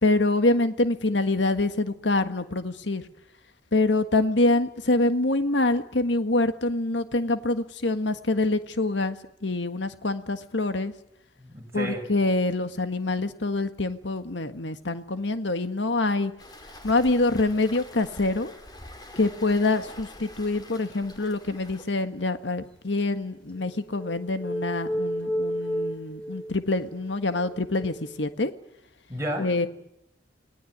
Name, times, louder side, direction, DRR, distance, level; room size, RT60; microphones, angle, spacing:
voice 1, 0.0-3.0 3.7-10.9 11.7-16.3 16.8-18.5 19.2-28.5 29.4-29.7, left 2 dB, 85° left, 9 dB, 1.6 m, -25 dB
voice 2, 11.4-12.0 29.1-29.7, right 1 dB, 15° right, 1 dB, 6.0 m, -32 dB
Waves surf, 16.4-21.8, left 1 dB, 25° left, 4.9 m, -46 dB
sound 1, 23.6-28.3, equal, 5° left, 5.0 m, -32 dB
29.5 x 19.5 x 9.4 m, 0.80 s
head